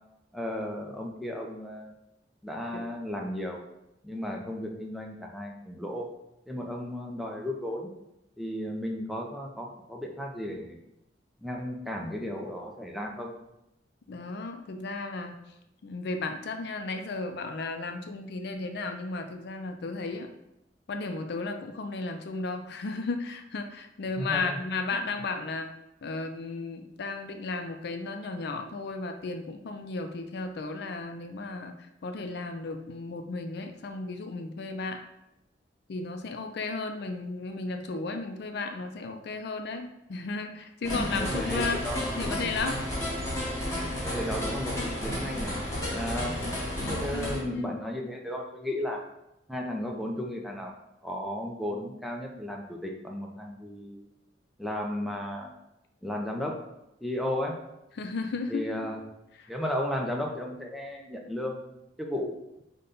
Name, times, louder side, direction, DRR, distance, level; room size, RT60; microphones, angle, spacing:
voice 1, 0.3-1.9 2.4-3.6 4.0-6.1 6.5-7.9 8.4-10.8 11.4-13.3 24.2-24.6 40.8-42.4 44.0-45.5 45.9-46.5 46.9-49.0 49.5-50.7 51.0-54.0 54.6-55.5 56.0-56.6 57.0-57.6 58.5-59.0 59.5-62.4, left 1 dB, ahead, 0 dB, 0.5 m, -34 dB
voice 2, 14.1-15.4 15.8-20.3 20.9-25.7 26.0-31.7 32.0-35.0 35.9-41.8 42.1-42.8 46.8-47.7 58.0-58.6 59.4-59.5, left 3 dB, 65° left, 6 dB, 0.4 m, -34 dB
sound 1, 40.8-47.4, left 1 dB, 15° left, 1.2 m, -32 dB
5.1 x 2.2 x 3.9 m, 0.86 s
head